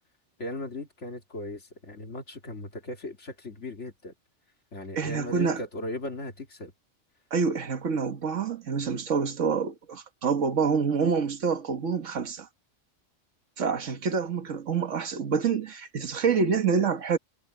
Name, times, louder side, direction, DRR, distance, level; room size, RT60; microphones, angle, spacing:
voice 1, 0.4-4.1 4.7-6.7, left 2 dB, 70° left, 3.2 m, -37 dB
voice 2, 5.0-5.6 7.3-12.5 13.6-17.2, right 5 dB, 85° right, 1.8 m, -27 dB
omnidirectional pair, 1.3 m